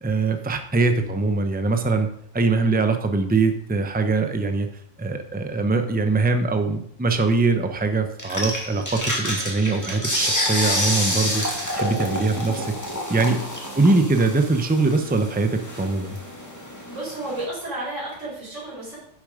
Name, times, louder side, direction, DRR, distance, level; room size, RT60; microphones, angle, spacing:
voice 1, 0.0-2.1 2.3-4.7 5.0-11.4 11.8-12.7 13.1-13.4 13.8-16.2, right 3 dB, 10° right, 7 dB, 0.7 m, -22 dB
sound 1, 8.2-17.4, left 1 dB, 15° left, 2.2 m, -28 dB
voice 2, 13.1-14.0 16.8-19.0, right 2 dB, 75° right, -5 dB, 5.3 m, -33 dB
10.5 x 7.2 x 5.0 m, 0.68 s
omnidirectional pair, 1.3 m